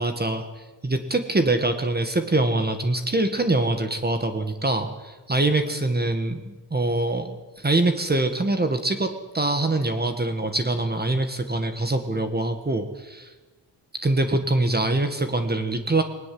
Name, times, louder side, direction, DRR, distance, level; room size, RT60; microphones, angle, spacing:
voice 1, 0.0-13.3 14.0-16.0, right 2 dB, 20° right, 7 dB, 1.6 m, -24 dB
20.0 x 19.0 x 7.8 m, 1.1 s
wide cardioid pair, 135°, 43 cm